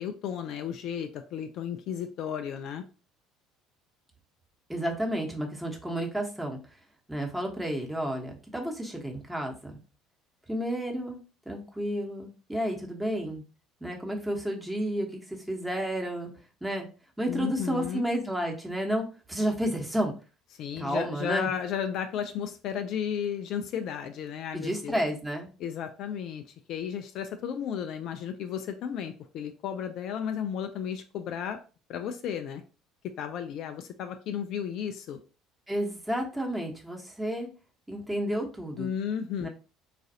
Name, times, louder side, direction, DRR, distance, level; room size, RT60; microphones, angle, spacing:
voice 1, 0.0-2.8 17.3-18.1 20.6-25.0 25.6-31.6 31.9-32.6 33.2-35.2 38.8-39.5, left 8 dB, 55° left, 7 dB, 0.3 m, -34 dB
voice 2, 4.7-6.6 7.1-9.8 10.5-11.2 11.5-13.4 13.8-16.3 16.6-16.9 17.2-20.1 20.7-21.5 24.5-25.5 35.7-37.5 37.9-38.9 39.4-39.5, equal, 5° right, 0 dB, 1.0 m, -31 dB
3.9 x 2.5 x 2.7 m, 0.35 s
figure-of-eight pair, 60°, 0 cm